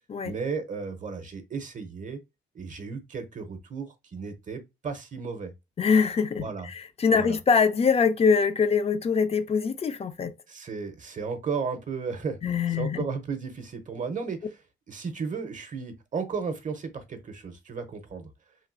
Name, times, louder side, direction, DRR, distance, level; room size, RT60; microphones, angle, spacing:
voice 1, 0.2-2.2 2.5-5.5 6.4-6.7 7.1-7.4 10.5-12.4 12.7-14.5 14.9-18.3, right 5 dB, 40° right, 0.6 m, -34 dB
voice 2, 5.8-10.3 12.4-13.0, left 5 dB, 30° left, 0.4 m, -23 dB
3.1 x 2.5 x 2.5 m
cardioid pair, 90°, 20 cm